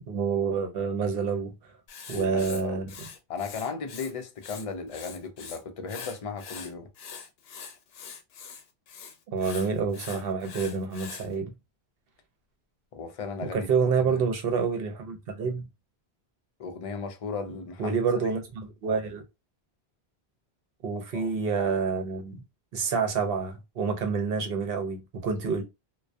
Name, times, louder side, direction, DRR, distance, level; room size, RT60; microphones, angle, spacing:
voice 1, 0.1-1.5 2.1-3.1 9.3-11.5 13.4-15.7 17.8-19.2 20.8-22.4 22.7-25.6, right 5 dB, 65° right, 0.8 m, -28 dB
Writing, 1.9-4.1 4.4-5.6 5.9-11.3, left 6 dB, 70° left, 0.8 m, -43 dB
voice 2, 2.1-2.8 3.3-6.9 12.9-13.7 14.0-14.2 16.6-18.0 21.1-21.3, left 5 dB, 50° left, 0.4 m, -36 dB
2.2 x 2.2 x 2.5 m
omnidirectional pair, 1.1 m